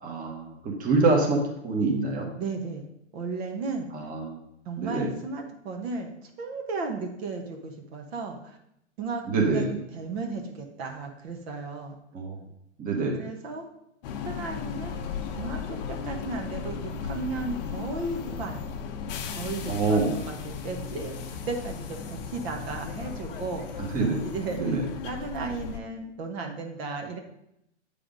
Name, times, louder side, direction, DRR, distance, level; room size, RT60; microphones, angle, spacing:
voice 1, 0.0-2.3 3.9-4.4 4.8-5.1 9.3-9.7 12.1-12.4 12.8-13.2 19.7-20.2 23.8-24.2 24.5-24.9, right 3 dB, 25° right, 1 dB, 1.2 m, -26 dB
voice 2, 2.4-2.9 3.1-3.9 4.6-8.6 9.0-9.2 9.5-12.0 13.1-13.7 14.2-15.0 15.3-18.6 19.4-23.8 24.2-24.8 25.0-27.2, right 3 dB, 55° right, 3 dB, 1.2 m, -35 dB
sound 1, 14.0-25.8, left 6 dB, 50° left, 0.9 m, -36 dB
7.5 x 3.5 x 5.2 m, 0.79 s
hypercardioid pair, 125°, 36 cm